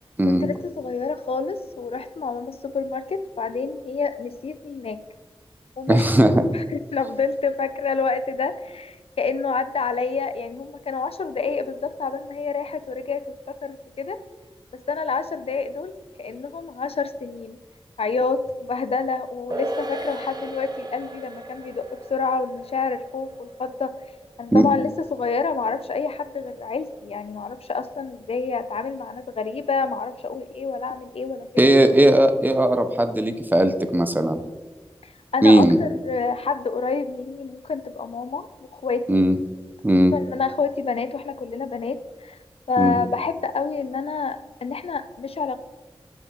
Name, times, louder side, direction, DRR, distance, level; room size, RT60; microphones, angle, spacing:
voice 1, 0.3-5.0 5.8-6.1 6.5-14.2 14.7-15.9 16.2-17.6 18.0-23.9 24.4-31.5 35.0-38.5 38.7-39.2 40.1-42.4 42.7-45.6, left 4 dB, 75° left, 11 dB, 0.4 m, -28 dB
voice 2, 5.9-6.5 24.5-24.7 31.6-34.4 35.4-35.8 39.1-39.4 39.8-40.1 42.8-43.0, right 1 dB, 20° right, 8 dB, 0.7 m, -17 dB
sound 1, 19.5-26.2 26.4-26.5, right 1 dB, 40° right, 0.9 m, -37 dB
8.9 x 5.5 x 3.0 m, 1.3 s
wide cardioid pair, 50°, 10 cm